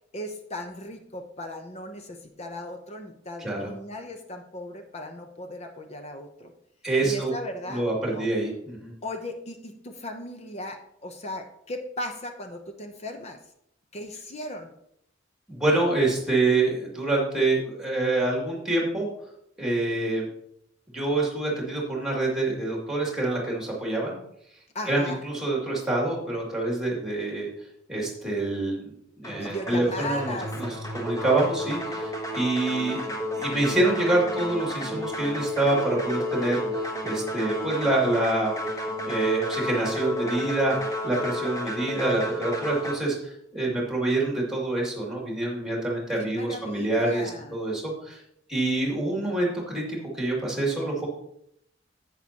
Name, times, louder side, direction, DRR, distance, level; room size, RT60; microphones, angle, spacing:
voice 1, 0.1-6.5 7.0-8.3 9.0-13.4 13.9-14.7 24.7-25.2 29.3-30.9 41.8-42.3 46.2-47.6, left 1 dB, 35° left, 5 dB, 0.8 m, -37 dB
voice 2, 3.4-3.7 6.8-7.3 7.7-8.9 15.5-19.1 19.6-20.3 20.9-24.2 24.9-27.5 27.9-28.9 29.2-30.7 30.9-33.0 33.4-38.5 39.0-48.2 48.5-51.1, right 2 dB, 5° right, -2 dB, 2.5 m, -26 dB
sound 1, 29.2-43.0, left 1 dB, 15° left, 1.1 m, -32 dB
10.5 x 8.4 x 2.9 m, 0.74 s
head